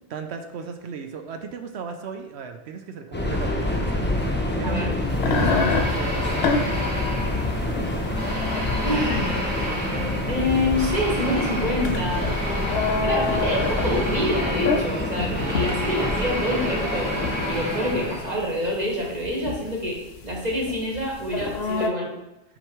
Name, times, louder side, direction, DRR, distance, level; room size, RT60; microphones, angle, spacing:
voice 1, 0.1-4.1 4.6-5.0 5.3-6.9 15.2-15.6 17.9-18.0, right 5 dB, 75° right, 6 dB, 0.9 m, -35 dB
Subway metro underground, 3.1-18.5, left 1 dB, 10° left, 0.6 m, -27 dB
sound 1, 5.1-21.9, left 4 dB, 70° left, 0.9 m, -29 dB
sound 2, 5.3-7.7 8.1-18.5, equal, 15° right, 1.9 m, -32 dB
voice 2, 7.8-8.2 8.8-12.4 13.0-22.1, left 1 dB, 40° right, -3 dB, 1.6 m, -27 dB
7.8 x 5.1 x 3.1 m, 0.97 s
omnidirectional pair, 1.1 m